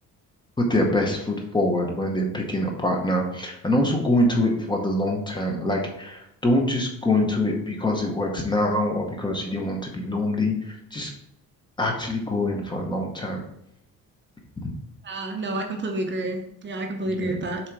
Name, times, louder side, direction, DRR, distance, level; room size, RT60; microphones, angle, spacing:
voice 1, 0.6-11.1 11.8-13.4 14.6-14.7 17.1-17.4, left 1 dB, 15° left, 1 dB, 0.8 m, -24 dB
voice 2, 15.0-17.6, right 2 dB, 35° right, 3 dB, 0.8 m, -29 dB
7.3 x 3.9 x 4.6 m, 0.76 s
cardioid pair, 180°, 33 cm